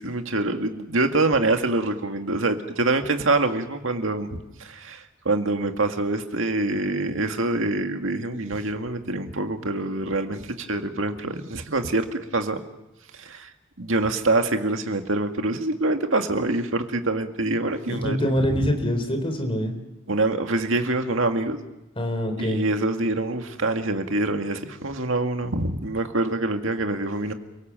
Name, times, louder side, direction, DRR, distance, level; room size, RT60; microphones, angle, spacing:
voice 1, 0.0-12.6 13.1-13.5 13.8-18.7 20.1-21.6 22.4-27.3, right 2 dB, 80° right, 6 dB, 2.0 m, -25 dB
voice 2, 17.9-19.8 22.0-22.6, equal, 25° left, 5 dB, 4.0 m, -25 dB
29.5 x 18.0 x 7.6 m, 0.97 s
head